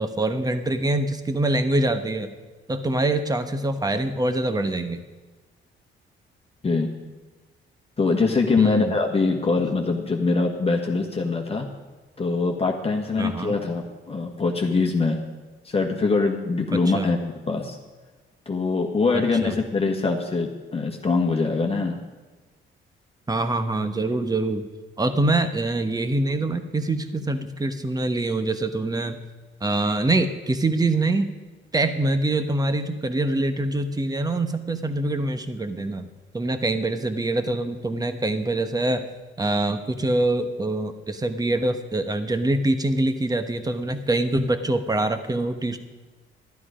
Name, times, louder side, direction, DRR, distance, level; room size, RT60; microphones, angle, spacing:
voice 1, 0.0-2.3 2.7-5.0 8.6-8.9 13.2-13.6 16.7-17.1 19.4-19.5 23.3-24.7 25.0-29.2 29.6-31.3 31.7-36.1 36.3-39.1 39.4-45.8, right 2 dB, 20° right, 9 dB, 1.2 m, -24 dB
voice 2, 6.6-6.9 8.0-11.7 12.2-15.2 15.6-17.8 18.4-22.0, left 3 dB, 30° left, 1 dB, 1.5 m, -23 dB
12.0 x 12.0 x 5.1 m, 1.3 s
cardioid pair, 90°, 20 cm